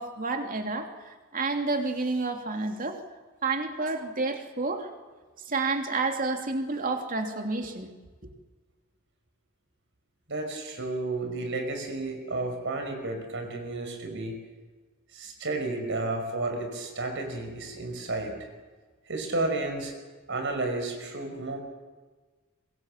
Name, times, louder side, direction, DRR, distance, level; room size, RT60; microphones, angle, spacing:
voice 1, 0.0-3.0 3.4-4.9 5.5-7.9, right 3 dB, 40° right, 4 dB, 3.0 m, -30 dB
voice 2, 10.3-14.4 15.1-18.5 19.1-19.9 20.3-21.6, right 2 dB, 60° right, 4 dB, 5.5 m, -32 dB
26.0 x 23.0 x 7.5 m, 1.3 s
head